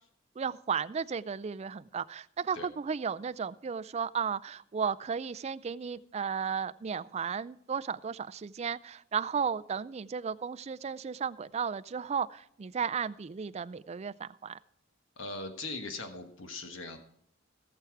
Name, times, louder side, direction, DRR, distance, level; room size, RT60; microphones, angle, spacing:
voice 1, 0.4-14.6, right 6 dB, 30° right, 15 dB, 0.3 m, -34 dB
voice 2, 15.2-17.0, left 2 dB, 65° left, 6 dB, 1.4 m, -40 dB
18.0 x 7.1 x 4.7 m, 0.69 s
head